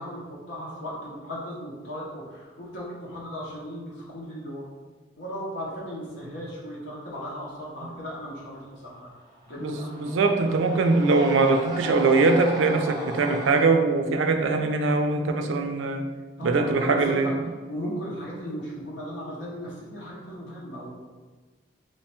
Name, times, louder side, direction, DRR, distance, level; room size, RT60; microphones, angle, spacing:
voice 1, 0.0-4.7 5.2-9.1 9.5-10.5 16.4-17.3 17.7-20.9, equal, 65° left, -5 dB, 0.8 m, -36 dB
Screaming, 9.2-13.7, equal, 20° right, 0.6 m, -37 dB
voice 2, 9.6-16.0 16.4-17.3, right 3 dB, 75° right, 5 dB, 0.4 m, -22 dB
3.1 x 2.3 x 4.2 m, 1.3 s
head